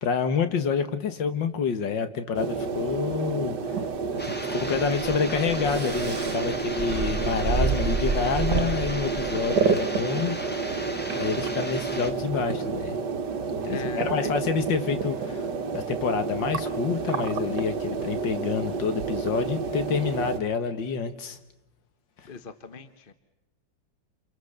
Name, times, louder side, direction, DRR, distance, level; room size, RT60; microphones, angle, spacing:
voice 1, 0.0-3.8 4.1-10.4 11.1-13.0 13.6-15.5 15.7-21.4 22.2-22.3, left 6 dB, 80° left, 2.2 m, -28 dB
sound 1, 2.3-20.4, right 5 dB, 70° right, 1.7 m, -30 dB
sound 2, 4.2-12.1, equal, 5° left, 1.7 m, -37 dB
sound 3, 4.7-9.8, right 4 dB, 35° right, 1.0 m, -30 dB
voice 2, 13.7-14.3 22.3-23.1, left 5 dB, 35° left, 1.1 m, -39 dB
29.0 x 28.5 x 6.7 m
omnidirectional pair, 2.0 m